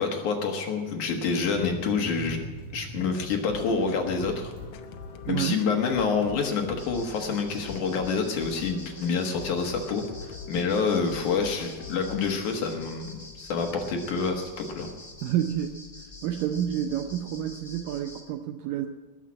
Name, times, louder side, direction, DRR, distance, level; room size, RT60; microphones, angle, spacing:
voice 1, 0.0-2.4 2.7-4.5 5.2-14.9, left 5 dB, 60° left, 3 dB, 2.5 m, -27 dB
sound 1, 1.5-8.1 8.5-11.2 11.5-11.6 11.9-15.3 15.6-15.8, right 3 dB, 5° right, 2.3 m, -46 dB
sound 2, 3.5-12.3, left 6 dB, 85° left, 1.6 m, -43 dB
sound 3, 6.8-18.2, left 2 dB, 15° left, 1.3 m, -47 dB
voice 2, 15.2-15.7 16.2-18.9, right 10 dB, 80° right, 6 dB, 2.0 m, -29 dB
20.0 x 7.4 x 8.5 m, 1.3 s
omnidirectional pair, 4.6 m